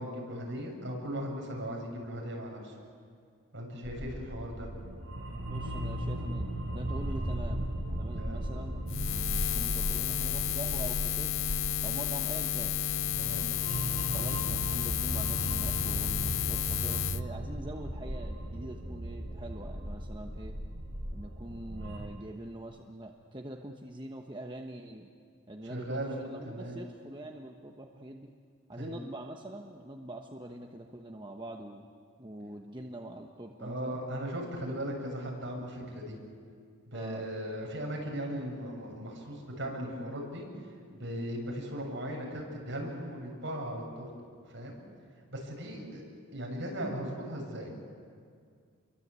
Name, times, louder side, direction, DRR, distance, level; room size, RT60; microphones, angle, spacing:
voice 1, 0.0-2.7 3.5-4.7 8.2-8.4 13.2-13.4 25.4-26.2 26.4-26.8 28.8-28.9 33.6-36.2 36.9-40.5 40.9-44.8 45.3-46.0 46.3-47.8, equal, 55° right, 0 dB, 7.3 m, -38 dB
sound 1, 3.8-22.1, right 1 dB, 75° right, 4.5 m, -37 dB
voice 2, 5.5-8.8 9.1-11.3 11.8-12.8 14.1-20.6 21.1-25.1 25.5-28.3 28.7-31.9 32.2-34.0 36.9-37.3, right 1 dB, 20° right, 1 dB, 1.2 m, -44 dB
Buzz, 8.9-17.2, left 10 dB, 65° left, 0.6 m, -32 dB
29.5 x 23.0 x 8.4 m, 2.2 s
head